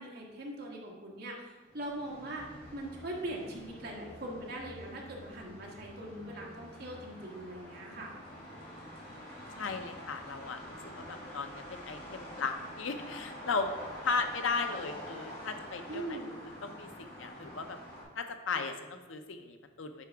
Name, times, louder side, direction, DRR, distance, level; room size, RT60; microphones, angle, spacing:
voice 1, 0.0-8.1 15.9-16.3, right 1 dB, 55° right, -2 dB, 1.4 m, -41 dB
sound 1, 1.6-18.0, equal, 50° left, 2.2 m, -47 dB
voice 2, 9.6-13.7 14.0-16.2 16.6-17.8 18.1-20.0, left 4 dB, 85° left, 7 dB, 0.7 m, -36 dB
9.6 x 4.7 x 3.5 m, 1.3 s
head